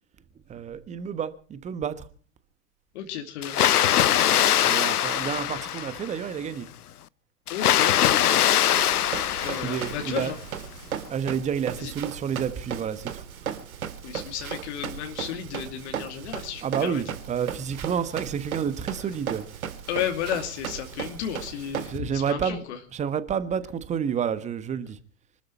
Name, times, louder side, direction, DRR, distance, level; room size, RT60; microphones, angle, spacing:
voice 1, 0.5-2.0 4.6-6.7 9.5-10.3 11.1-13.2 16.6-19.4 21.9-22.6 22.9-25.0, right 8 dB, 15° right, 1.3 m, -29 dB
voice 2, 2.9-3.6 7.5-8.4 9.4-10.4 11.8-11.9 14.0-17.0 19.0-19.1 19.9-22.8, left 9 dB, 45° left, 2.6 m, -33 dB
Water, 3.4-6.2 7.5-10.3, left 11 dB, 70° left, 0.8 m, -22 dB
Run, 8.7-22.0, right 8 dB, 60° right, 2.5 m, -36 dB
25.0 x 13.0 x 4.3 m
figure-of-eight pair, 110°, 47 cm